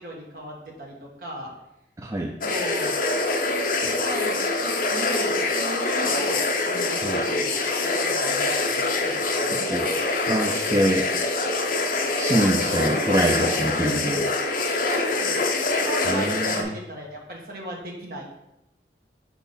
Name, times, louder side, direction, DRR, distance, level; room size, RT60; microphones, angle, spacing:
voice 1, 0.0-1.5 2.4-2.9 3.8-7.6 7.9-9.9 12.4-12.5 12.7-13.6 14.8-18.2, right 1 dB, 55° right, -1 dB, 1.4 m, -36 dB
voice 2, 2.0-2.4 7.0-7.2 9.5-9.9 10.3-11.1 12.2-14.3 16.1-16.7, right 1 dB, 15° right, 1 dB, 0.3 m, -25 dB
sound 1, 2.4-16.6, left 3 dB, 50° left, 0.7 m, -25 dB
4.5 x 3.9 x 5.5 m, 0.84 s
head